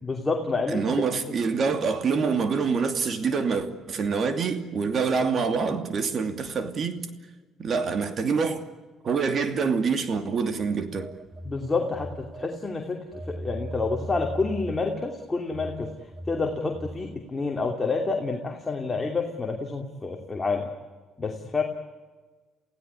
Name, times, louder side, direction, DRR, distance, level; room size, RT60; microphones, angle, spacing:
voice 1, 0.0-0.9 11.4-13.0 13.3-15.9 16.3-20.7 21.2-21.6, left 3 dB, 20° left, 2.8 m, -28 dB
voice 2, 0.7-7.0 7.6-8.6 9.0-11.1, right 5 dB, 45° right, 2.7 m, -26 dB
Telephone, 11.0-12.8 13.1-17.2, right 1 dB, 25° right, 2.0 m, -39 dB
28.5 x 16.5 x 9.9 m
cardioid pair, 100°, 0 cm